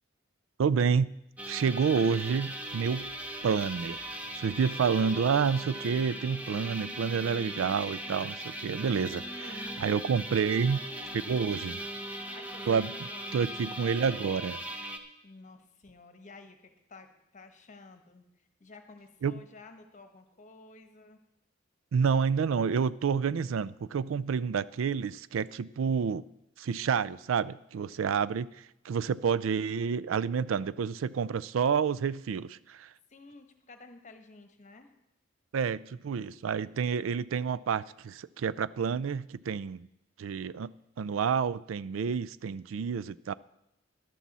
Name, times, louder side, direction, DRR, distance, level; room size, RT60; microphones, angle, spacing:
voice 1, 0.6-1.1 1.5-3.1 3.4-9.5 9.8-10.8 11.1-11.8 12.7-14.6 19.2-19.4 21.9-26.2 26.6-32.9 35.5-39.9 40.2-40.7 41.0-43.3, right 6 dB, 90° right, 18 dB, 0.4 m, -29 dB
sound 1, 1.4-15.0, right 1 dB, 10° right, 0.8 m, -39 dB
sound 2, 2.7-8.3, left 1 dB, 50° right, 1.6 m, -60 dB
voice 2, 9.4-10.3 12.1-13.4 15.2-21.2 33.1-34.9, left 3 dB, 40° left, 7 dB, 1.1 m, -52 dB
13.5 x 11.5 x 4.2 m, 0.87 s
head